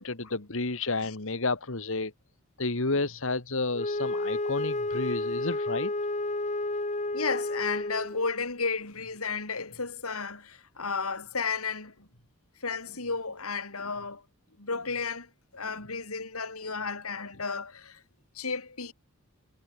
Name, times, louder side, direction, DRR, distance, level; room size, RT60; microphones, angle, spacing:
voice 1, 0.0-2.1 2.6-5.9, left 3 dB, 65° left, 2.0 m, -31 dB
Wind instrument woodwind instrument, 3.7-8.3, left 2 dB, 35° left, 1.9 m, -31 dB
voice 2, 7.1-12.1 12.6-14.2 14.6-18.0 18.3-18.9, left 4 dB, 90° left, 4.7 m, -33 dB
head